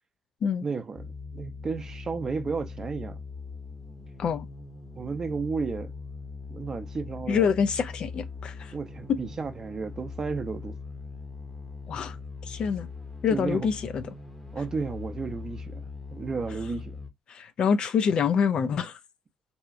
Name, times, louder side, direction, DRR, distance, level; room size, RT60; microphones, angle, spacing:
voice 1, 0.6-3.2 4.9-5.9 6.5-7.5 8.7-10.8 13.3-13.7 14.5-17.0, right 4 dB, 30° right, 0.5 m, -33 dB
sound 1, 0.9-17.1, left 4 dB, 15° left, 0.8 m, -41 dB
voice 2, 7.3-8.7 11.9-12.2 12.4-12.9 13.2-14.0 17.3-19.0, left 6 dB, 50° left, 0.3 m, -26 dB
2.7 x 2.2 x 2.4 m
cardioid pair, 115°, 2 cm